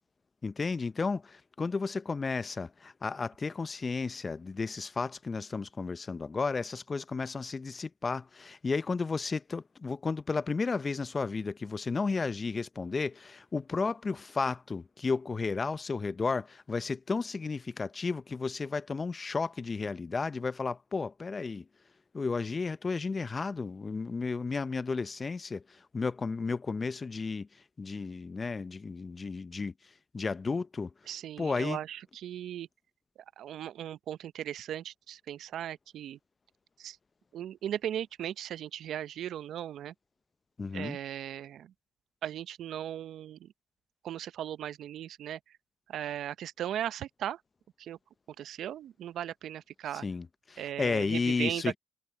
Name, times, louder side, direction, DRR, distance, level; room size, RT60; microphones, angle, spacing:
voice 1, 0.4-21.7 22.1-30.9 31.4-31.8 40.6-41.0 50.0-51.8, left 4 dB, 35° left, 0.7 m, -33 dB
voice 2, 31.1-32.7 33.4-36.2 36.8-37.0 37.3-39.9 40.7-41.7 42.2-43.5 44.0-45.6 45.9-47.4 47.8-48.0 48.4-50.0 50.6-51.8, right 11 dB, 70° right, 0.7 m, -37 dB
supercardioid pair, 60°, 0 cm